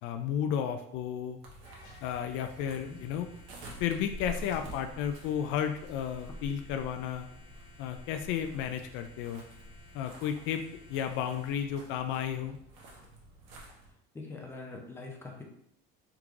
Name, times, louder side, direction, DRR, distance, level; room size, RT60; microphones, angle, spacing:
voice 1, 0.0-1.4 2.0-3.3 3.8-7.3 7.8-9.4 9.9-10.6 10.9-12.6, left 9 dB, 65° left, 7 dB, 0.4 m, -33 dB
sound 1, 1.4-13.9, right 1 dB, 80° right, 1.2 m, -48 dB
sound 2, 1.6-11.6, left 2 dB, 85° left, 1.2 m, -58 dB
voice 2, 14.1-15.4, left 3 dB, 10° left, 1 dB, 0.7 m, -43 dB
3.6 x 3.1 x 3.6 m, 0.73 s
cardioid pair, 150°, 21 cm